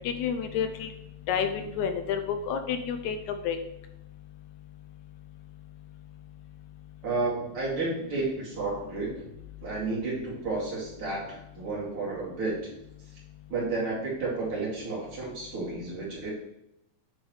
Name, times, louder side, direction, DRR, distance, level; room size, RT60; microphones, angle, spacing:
voice 1, 0.0-0.9 1.3-3.2 3.5-3.6, left 7 dB, 80° left, 7 dB, 1.9 m, -29 dB
voice 2, 7.0-9.3 9.6-12.7 13.5-16.3, right 3 dB, 45° right, -5 dB, 3.0 m, -31 dB
9.1 x 6.5 x 3.1 m, 0.83 s
omnidirectional pair, 3.5 m